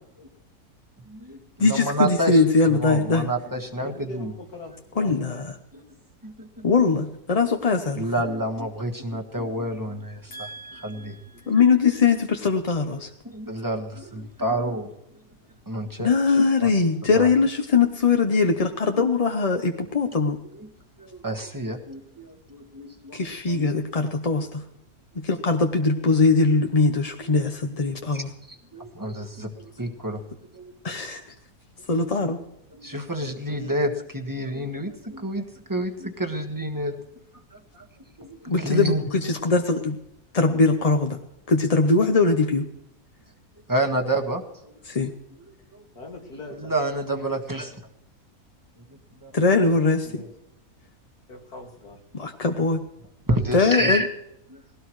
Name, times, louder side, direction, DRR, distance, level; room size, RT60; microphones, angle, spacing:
voice 1, 1.1-2.4 2.7-4.3 5.7-5.8 6.2-6.7 8.0-10.3 10.8-11.2 11.4-11.5 13.2-14.9 15.7-16.1 16.6-16.7 17.1-17.3 20.6-20.7 21.0-23.2 23.5-23.7 24.3-24.5 27.2-27.4 28.1-30.2 30.5-30.9 32.7-36.9 37.5-37.8 38.2-39.0 43.7-45.1 45.7-45.8 46.6-47.8 48.9-49.3 53.3-54.1 54.5-54.6, right 1 dB, 15° right, 3 dB, 1.4 m, -29 dB
voice 2, 1.6-3.3 5.0-5.5 6.6-8.0 11.5-13.1 16.0-20.4 23.1-24.6 25.2-28.3 30.8-31.2 31.9-32.4 38.5-40.0 40.3-41.2 41.5-42.7 44.9-45.1 49.3-50.2 52.1-52.8 53.5-54.0, left 4 dB, 35° left, 5 dB, 0.6 m, -21 dB
voice 3, 3.8-5.1 10.3-11.5 31.2-31.3 46.0-46.7 49.7-50.3 51.3-52.0, left 1 dB, 80° left, 1 dB, 2.8 m, -41 dB
19.0 x 17.0 x 3.1 m, 0.82 s
omnidirectional pair, 1.6 m